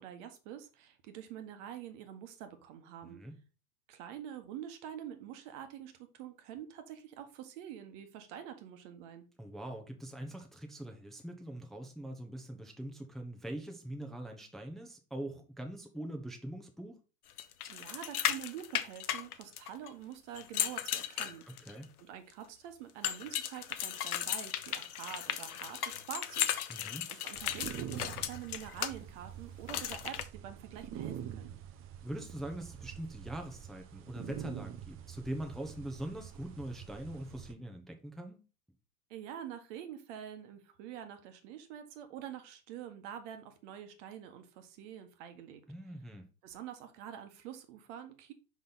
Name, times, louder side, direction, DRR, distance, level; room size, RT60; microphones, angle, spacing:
voice 1, 0.0-3.2 3.9-9.2 17.7-21.7 22.0-31.6 39.1-45.6 46.4-48.3, right 10 dB, 50° right, 1.3 m, -46 dB
voice 2, 3.0-3.3 9.4-17.0 21.6-21.9 26.7-27.1 32.0-38.4 45.7-46.3, right 1 dB, ahead, 0.8 m, -42 dB
sound 1, 17.4-19.9 20.4-21.8 23.0-28.9 29.7-30.2, left 10 dB, 75° left, 0.9 m, -36 dB
sound 2, 27.3-37.5, right 10 dB, 30° right, 0.7 m, -46 dB
5.3 x 5.2 x 4.0 m
hypercardioid pair, 95°, 46 cm